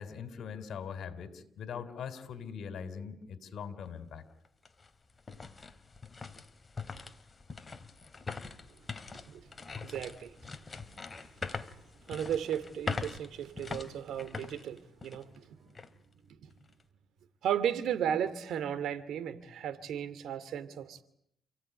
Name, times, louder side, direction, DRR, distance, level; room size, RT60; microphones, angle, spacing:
voice 1, 0.0-4.2, left 7 dB, 65° left, 3.8 m, -41 dB
sound 1, 3.8-3.9 4.4-15.4 15.7-15.9 16.5-16.8, left 4 dB, 30° left, 2.5 m, -42 dB
voice 2, 9.8-10.4 12.1-15.4 16.4-16.5 17.4-21.0, right 9 dB, 75° right, 2.6 m, -35 dB
29.5 x 17.0 x 9.9 m
cardioid pair, 90°, 0 cm